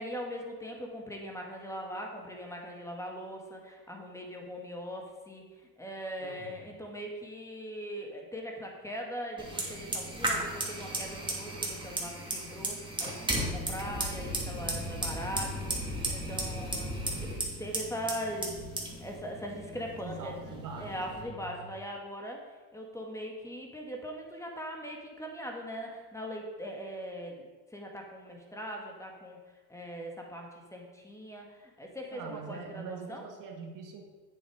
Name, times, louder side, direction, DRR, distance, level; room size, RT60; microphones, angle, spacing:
voice 1, 0.0-22.4 22.7-29.4 29.7-33.2, equal, 5° left, 1 dB, 2.0 m, -41 dB
voice 2, 6.2-6.8 20.0-21.7 32.1-34.0, right 4 dB, 50° right, 2 dB, 2.0 m, -43 dB
Fire, 9.4-21.2, right 1 dB, 10° right, 2.5 m, -35 dB
8.1 x 7.4 x 5.0 m, 1.4 s
supercardioid pair, 95°, 42 cm